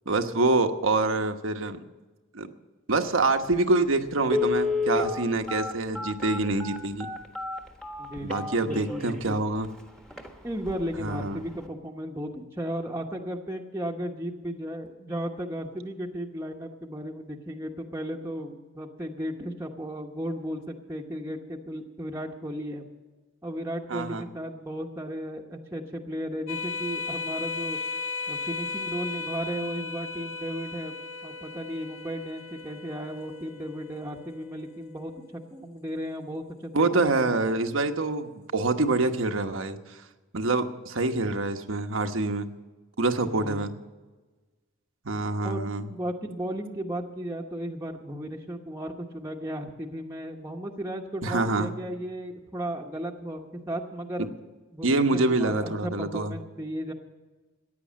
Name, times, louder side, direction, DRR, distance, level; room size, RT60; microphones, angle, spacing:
voice 1, 0.1-1.8 2.3-2.5 2.9-7.1 8.2-9.7 11.0-11.4 23.9-24.2 36.7-39.8 40.3-42.5 43.0-43.7 45.0-45.8 51.2-51.7 54.8-56.3, right 2 dB, 80° right, 6 dB, 1.1 m, -26 dB
Telephone, 3.5-3.6 4.2-9.1 9.6-9.7 10.1-10.3 10.7-11.0 11.3-11.4, left 4 dB, 5° left, 1.3 m, -30 dB
voice 2, 8.0-9.4 10.4-22.8 23.4-27.8 28.3-30.9 31.2-37.4 43.2-43.7 45.4-54.3 54.7-56.9, equal, 15° right, -1 dB, 1.0 m, -35 dB
sound 1, 26.5-35.4, left 4 dB, 90° left, 1.3 m, -36 dB
14.5 x 9.7 x 7.4 m, 1.2 s
head